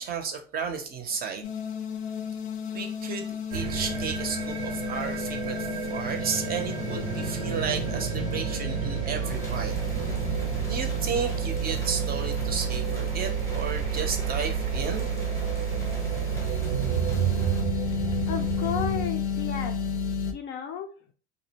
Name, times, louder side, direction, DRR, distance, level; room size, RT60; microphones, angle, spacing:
voice 1, 0.0-1.5 2.7-9.7 10.7-15.1, right 6 dB, 30° right, 5 dB, 0.6 m, -33 dB
sound 1, 1.4-20.3, equal, 85° left, 0.6 m, -31 dB
sound 2, 3.5-19.1, right 8 dB, 80° right, 0.6 m, -33 dB
sound 3, 9.2-17.6, left 1 dB, 10° left, 0.7 m, -43 dB
voice 2, 18.3-19.8 20.3-20.9, left 8 dB, 35° left, 5 dB, 0.4 m, -33 dB
2.4 x 2.1 x 2.8 m, 0.38 s
supercardioid pair, 110°, 33 cm